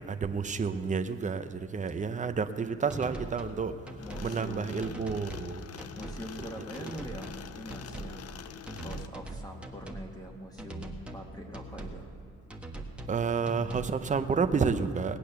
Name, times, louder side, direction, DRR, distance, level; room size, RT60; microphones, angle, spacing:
voice 1, 0.1-3.7 4.2-5.7 13.1-15.2, right 5 dB, 25° right, 9 dB, 0.7 m, -30 dB
sound 1, 2.9-3.6 3.9-4.3 4.8-5.5 5.8-6.2 6.7-7.4 7.7-8.2 8.7-10.1 10.6-11.2 11.5-12.0 12.5-13.2 13.5-13.9, right 2 dB, 5° right, 1.4 m, -41 dB
sound 2, 4.0-9.1, left 9 dB, 55° left, 0.6 m, -45 dB
voice 2, 4.0-4.8 6.0-8.3 8.8-12.1, equal, 15° left, 1 dB, 1.7 m, -44 dB
18.5 x 8.5 x 6.8 m, 2.7 s
cardioid pair, 90°, 30 cm